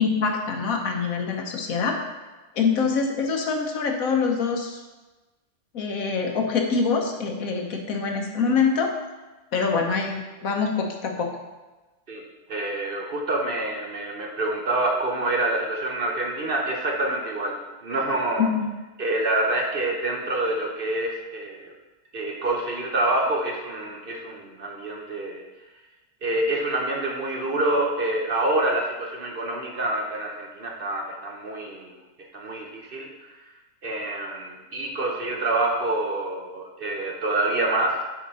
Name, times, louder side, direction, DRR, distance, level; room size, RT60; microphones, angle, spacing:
voice 1, 0.0-2.0 2.5-4.8 5.7-8.9 9.5-11.4 18.4-18.7, left 5 dB, 80° left, 2 dB, 1.4 m, -25 dB
voice 2, 12.5-17.6 17.8-18.5 19.0-21.7 22.1-25.4 26.2-31.9 32.3-33.1 33.8-38.0, right 2 dB, 45° right, 1 dB, 0.9 m, -26 dB
8.5 x 5.1 x 4.2 m, 1.2 s
omnidirectional pair, 1.5 m